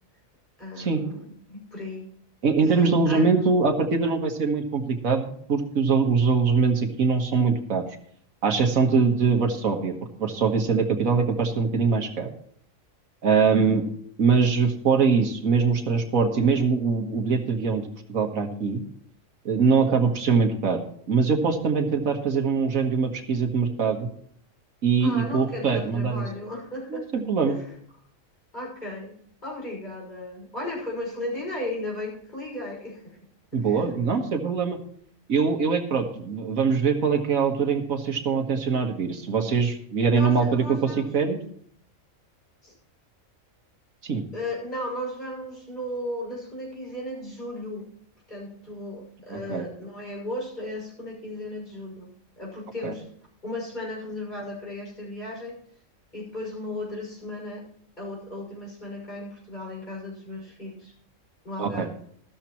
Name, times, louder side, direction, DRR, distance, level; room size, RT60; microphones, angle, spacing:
voice 1, 0.6-2.1 2.8-3.3 13.5-13.8 25.0-27.7 28.5-29.1 29.4-33.2 33.5-33.8 40.1-41.1 42.6-42.7 44.3-47.9 48.3-52.1 52.4-53.0 53.4-55.6 56.1-57.6 58.0-60.9 61.4-61.9, left 1 dB, 35° left, -2 dB, 6.2 m, -35 dB
voice 2, 2.4-5.2 5.5-7.8 8.4-9.9 10.2-12.3 13.2-13.8 14.2-17.8 18.1-18.8 19.5-20.8 21.1-24.1 24.8-26.3 26.9-27.6 33.5-34.8 35.3-41.4 44.0-44.2 49.3-49.7 52.8-52.9 61.6-61.9, right 5 dB, 85° right, 5 dB, 1.9 m, -23 dB
14.0 x 13.0 x 3.0 m, 0.62 s
omnidirectional pair, 1.4 m